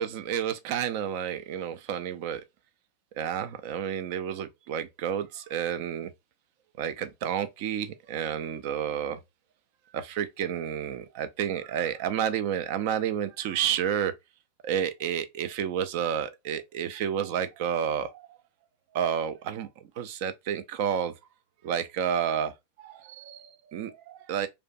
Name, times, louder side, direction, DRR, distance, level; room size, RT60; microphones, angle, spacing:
voice 1, 0.0-2.4 3.2-6.1 6.8-9.2 9.9-14.1 14.6-18.4 18.9-19.7 20.0-21.1 21.6-22.5 22.8-24.5, right 9 dB, 50° right, 0.4 m, -30 dB
2.5 x 2.1 x 2.4 m
figure-of-eight pair, 90°, 0 cm